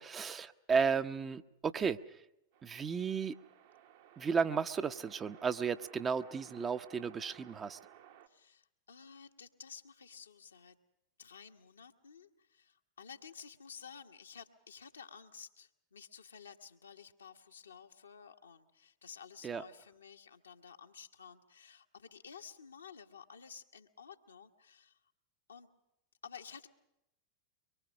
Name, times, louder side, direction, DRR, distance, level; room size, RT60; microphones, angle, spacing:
voice 1, 0.0-2.2 2.6-3.4 4.2-7.8 19.4-19.6, right 6 dB, 20° right, 10 dB, 0.8 m, -34 dB
sound 1, 2.5-8.3, right 10 dB, 55° right, 1.4 m, -58 dB
voice 2, 8.3-10.7 11.2-25.0 25.5-25.7 26.2-26.7, left 6 dB, 75° left, 4 dB, 1.2 m, -53 dB
24.0 x 23.0 x 6.3 m, 0.88 s
figure-of-eight pair, 90°, 0 cm